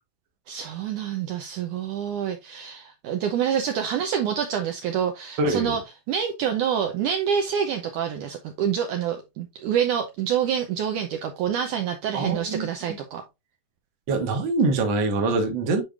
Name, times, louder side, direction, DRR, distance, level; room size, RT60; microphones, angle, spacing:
voice 1, 0.5-5.8 6.1-13.2, right 8 dB, 75° right, 1.9 m, -27 dB
voice 2, 5.4-5.8 12.1-13.0 14.1-15.8, right 3 dB, 50° right, 1.5 m, -24 dB
8.9 x 4.8 x 2.5 m
omnidirectional pair, 4.2 m